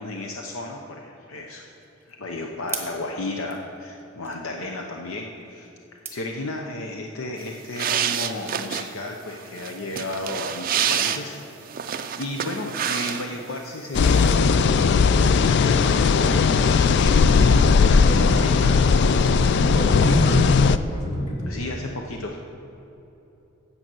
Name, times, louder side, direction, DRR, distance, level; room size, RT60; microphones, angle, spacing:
voice 1, 0.0-1.6 2.1-5.7 6.1-11.4 11.8-14.9 15.3-18.9 20.0-20.2 21.5-22.4, left 2 dB, 70° left, 2 dB, 0.7 m, -33 dB
sound 1, 1.4-7.0, right 5 dB, 10° right, 0.9 m, -42 dB
sound 2, 7.4-13.6 13.8-14.3, right 8 dB, 40° right, 0.4 m, -28 dB
sound 3, 13.9-20.8, left 5 dB, 50° left, 0.3 m, -18 dB
voice 2, 18.1-18.7 19.3-20.5 20.8-21.5, equal, 35° left, -3 dB, 2.1 m, -27 dB
9.0 x 8.0 x 6.1 m, 3.0 s
head